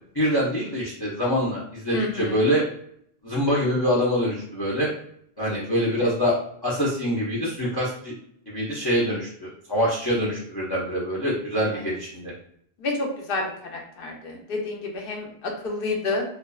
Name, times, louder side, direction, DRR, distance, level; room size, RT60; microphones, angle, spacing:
voice 1, 0.1-2.6 3.2-4.9 5.4-6.4 6.6-8.1 8.5-12.3, equal, 40° left, -4 dB, 0.3 m, -25 dB
voice 2, 1.9-2.4 11.7-11.8 12.8-13.4 13.7-16.2, left 2 dB, 65° left, 1 dB, 0.7 m, -29 dB
2.6 x 2.1 x 2.2 m, 0.68 s
omnidirectional pair, 1.1 m